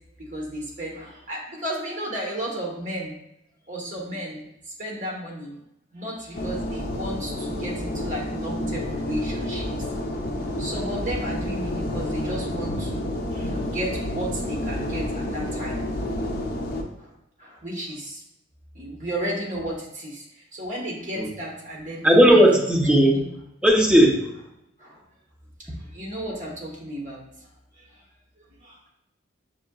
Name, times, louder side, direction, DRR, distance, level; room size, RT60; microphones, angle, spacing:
voice 1, 0.3-3.1 3.7-5.6 5.9-9.6 10.6-15.8 17.0-17.1 17.4-18.2 18.7-22.4 23.1-23.2 24.8-25.0 25.8-27.2 27.8-27.9 28.6-28.8, right 1 dB, 40° right, -3 dB, 1.3 m, -33 dB
sound 1, 6.3-16.8, left 1 dB, 55° left, 0.6 m, -29 dB
voice 2, 22.0-23.2 23.6-24.2, equal, 5° right, -2 dB, 0.7 m, -16 dB
6.1 x 2.8 x 2.3 m, 0.81 s
head